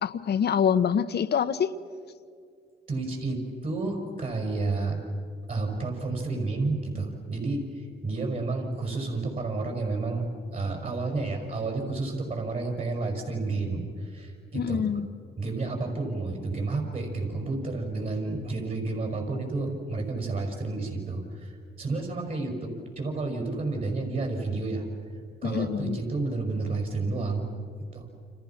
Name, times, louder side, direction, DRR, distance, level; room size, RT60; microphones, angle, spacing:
voice 1, 0.0-1.7 14.5-15.1 25.4-26.0, left 7 dB, 55° left, 13 dB, 1.1 m, -25 dB
voice 2, 2.9-5.0 5.5-14.9 15.4-24.9 25.4-27.5 27.9-28.1, right 3 dB, 45° right, 2 dB, 5.8 m, -31 dB
30.0 x 27.5 x 5.9 m, 2.2 s
cardioid pair, 90°, 20 cm